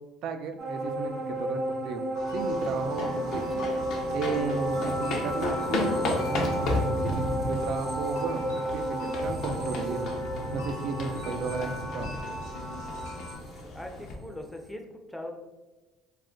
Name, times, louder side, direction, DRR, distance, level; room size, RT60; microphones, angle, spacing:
voice 1, 0.2-3.7 4.1-10.1 10.5-12.1, right 5 dB, 65° right, 7 dB, 0.3 m, -34 dB
sound 1, 0.6-14.3 14.7-14.8, right 1 dB, 50° right, 0.7 m, -33 dB
sound 2, 2.1-13.4, equal, 90° left, 1.0 m, -38 dB
sound 3, 2.4-14.1, left 2 dB, 65° left, 0.5 m, -34 dB
voice 2, 13.7-14.8 15.1-15.3, left 1 dB, 5° left, 3 dB, 0.4 m, -40 dB
2.3 x 2.1 x 3.6 m, 1.1 s
supercardioid pair, 90°, 0 cm